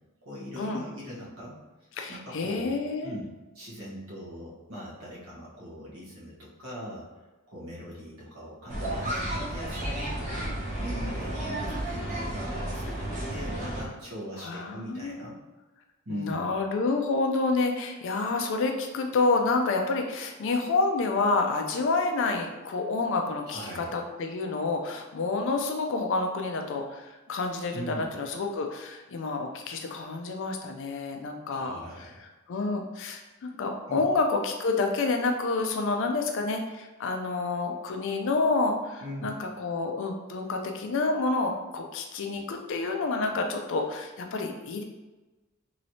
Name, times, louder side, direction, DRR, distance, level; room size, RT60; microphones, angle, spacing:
voice 1, 0.2-7.1 7.5-10.5 10.8-15.3 16.0-16.6 23.5-24.0 27.7-28.1 31.5-32.3 33.9-34.0 39.0-39.4, equal, 75° right, -6 dB, 1.2 m, -41 dB
voice 2, 2.0-3.2 14.4-15.3 16.1-31.8 32.5-44.8, left 3 dB, 60° left, 3 dB, 0.4 m, -28 dB
sound 1, 8.7-13.8, right 1 dB, 35° right, 0.9 m, -32 dB
3.0 x 3.0 x 2.7 m, 1.2 s
head